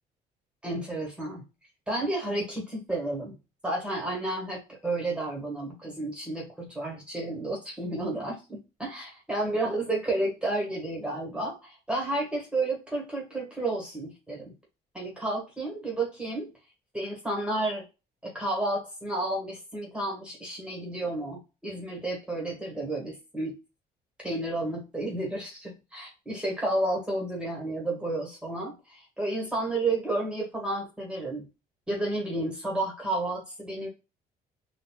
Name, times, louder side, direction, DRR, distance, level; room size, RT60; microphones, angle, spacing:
voice 1, 0.6-1.4 1.9-3.4 3.6-14.5 14.9-16.5 16.9-17.8 18.2-23.5 24.2-31.5 31.9-33.9, right 2 dB, 5° right, -2 dB, 1.7 m, -31 dB
4.1 x 2.7 x 2.4 m, 0.28 s
cardioid pair, 110°, 17 cm